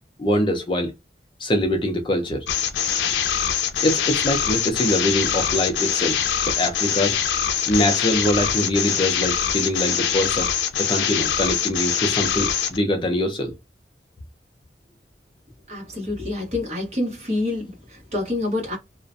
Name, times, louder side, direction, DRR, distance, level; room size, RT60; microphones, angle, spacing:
voice 1, 0.2-0.9 1.4-2.5 3.8-7.2 7.7-10.5 10.8-13.5, left 1 dB, 30° left, 0.5 m, -23 dB
sound 1, 2.5-12.8, left 8 dB, 90° left, 0.4 m, -23 dB
voice 2, 15.7-18.8, left 2 dB, 40° right, 1.1 m, -27 dB
2.4 x 2.1 x 2.5 m
head